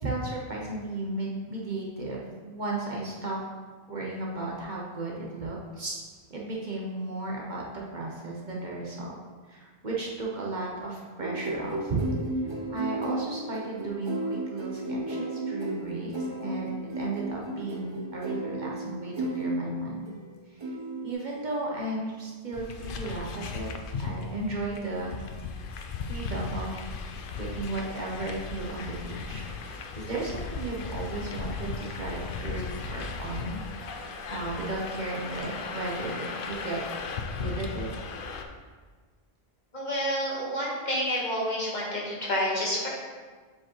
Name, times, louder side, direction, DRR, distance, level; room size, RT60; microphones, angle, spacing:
voice 1, 0.0-3.4 3.9-6.0 6.3-9.2 9.5-12.0 12.4-20.1 20.5-20.7 21.0-23.7 24.0-25.2 26.1-26.7 27.4-36.8 37.3-37.9, right 2 dB, 45° right, -3 dB, 1.0 m, -35 dB
sound 1, 11.2-20.3 20.6-21.1, right 2 dB, 30° right, 0.7 m, -34 dB
sound 2, 22.5-38.4, left 4 dB, 60° left, 0.7 m, -36 dB
voice 2, 39.7-42.9, equal, 45° left, -5 dB, 1.5 m, -29 dB
7.4 x 4.9 x 3.0 m, 1.4 s
omnidirectional pair, 1.1 m